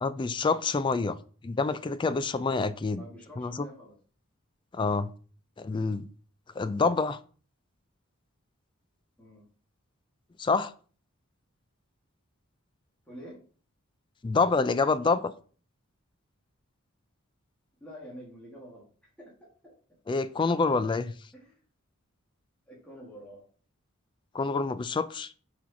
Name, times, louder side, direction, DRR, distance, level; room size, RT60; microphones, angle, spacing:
voice 1, 0.0-1.2 1.4-3.0 3.4-3.7 4.7-5.1 5.6-6.1 6.6-7.2 10.4-10.7 14.2-15.3 20.1-21.1 24.3-25.3, left 4 dB, 20° left, 0.3 m, -27 dB
voice 2, 2.9-3.9 9.2-9.4 13.1-13.4 17.8-18.9 19.2-19.7 21.3-21.6 22.7-23.4, equal, 5° left, 2.0 m, -47 dB
6.0 x 4.4 x 4.7 m
head